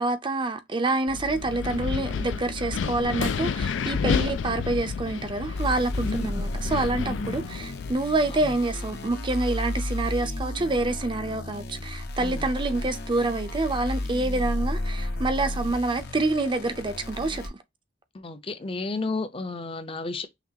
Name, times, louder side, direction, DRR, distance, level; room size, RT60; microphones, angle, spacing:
voice 1, 0.0-17.6, right 2 dB, 25° right, 0.5 m, -27 dB
Wind, 1.1-7.9, left 5 dB, 80° left, 0.4 m, -30 dB
sound 1, 5.5-17.5, left 1 dB, 60° left, 0.8 m, -33 dB
voice 2, 7.1-7.4 12.2-12.5 18.1-20.3, left 3 dB, 30° left, 0.6 m, -32 dB
5.9 x 2.4 x 2.8 m
head